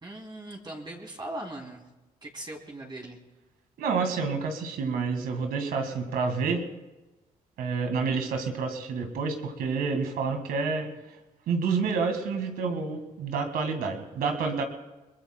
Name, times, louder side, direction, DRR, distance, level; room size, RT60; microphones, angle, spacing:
voice 1, 0.0-1.8 2.2-3.2, right 1 dB, 30° right, -1 dB, 2.9 m, -39 dB
voice 2, 3.8-6.7 7.6-10.9 11.5-14.6, right 4 dB, 85° right, 6 dB, 1.8 m, -29 dB
22.0 x 21.5 x 2.2 m, 1.1 s
supercardioid pair, 60°, 15 cm